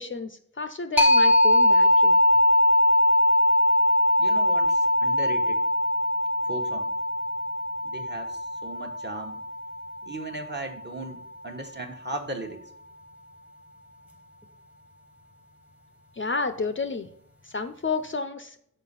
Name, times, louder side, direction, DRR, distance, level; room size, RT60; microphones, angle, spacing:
voice 1, 0.0-2.2 16.2-17.1 17.4-18.5, left 4 dB, 35° left, 9 dB, 0.5 m, -31 dB
sound 1, 1.0-10.4, left 1 dB, 5° right, 0.9 m, -21 dB
voice 2, 4.2-5.6 6.4-6.9 7.8-9.4 10.0-12.6, right 2 dB, 30° right, 3 dB, 1.1 m, -37 dB
6.6 x 5.1 x 5.5 m, 0.65 s
wide cardioid pair, 110°, 34 cm